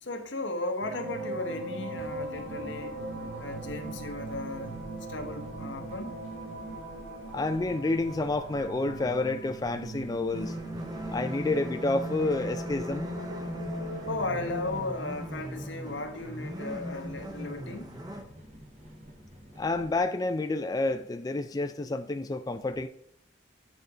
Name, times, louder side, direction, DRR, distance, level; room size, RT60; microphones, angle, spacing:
voice 1, 0.0-3.0 3.4-4.8 5.1-6.2 14.0-18.0, left 2 dB, 85° left, 1.1 m, -36 dB
sound 1, 0.8-14.8, right 2 dB, 70° right, 2.2 m, -40 dB
sound 2, 2.0-20.0, equal, 35° right, 1.4 m, -51 dB
voice 2, 7.3-10.6 11.1-13.1 19.6-22.9, left 2 dB, 20° left, 0.3 m, -29 dB
sound 3, 10.3-18.2, equal, 20° right, 0.9 m, -38 dB
9.0 x 4.1 x 4.8 m
head